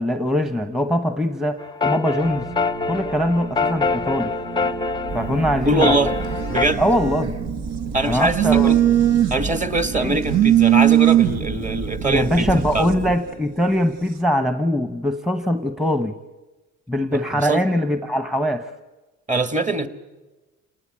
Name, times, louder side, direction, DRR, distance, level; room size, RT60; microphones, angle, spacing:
voice 1, 0.0-2.5 2.9-4.3 5.1-6.0 6.8-7.4 8.0-8.9 10.0-10.2 12.0-16.1 16.9-18.7, equal, ahead, 7 dB, 1.1 m, -22 dB
sound 1, 1.6-6.7, left 4 dB, 15° left, 0.7 m, -25 dB
sound 2, 2.2-14.2, right 5 dB, 90° right, 2.1 m, -36 dB
Telephone, 5.1-13.1, right 11 dB, 60° right, 1.9 m, -21 dB
voice 2, 5.6-6.1 6.5-6.8 7.9-8.8 9.3-12.5 12.7-12.9 17.1-17.6 19.3-19.9, right 2 dB, 25° right, 9 dB, 1.9 m, -22 dB
28.5 x 19.0 x 8.9 m, 1.2 s
cardioid pair, 90°, 30 cm